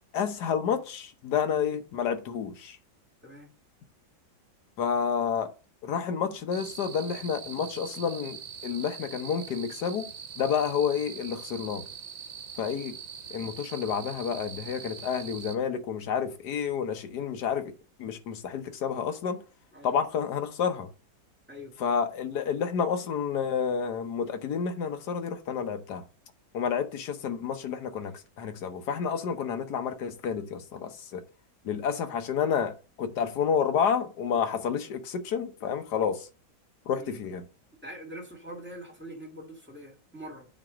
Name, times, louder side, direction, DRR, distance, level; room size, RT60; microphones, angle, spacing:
voice 1, 0.1-2.8 4.8-5.5 5.8-10.1 10.4-11.8 12.6-13.0 13.3-17.7 18.0-19.4 19.8-20.9 21.8-26.0 26.5-31.2 31.6-36.3 36.9-37.4, left 7 dB, 60° left, 1.4 m, -30 dB
sound 1, 6.5-15.6, right 8 dB, 85° right, 1.7 m, -43 dB
voice 2, 37.8-40.5, equal, 5° right, 1.7 m, -43 dB
8.8 x 3.3 x 6.2 m
omnidirectional pair, 2.1 m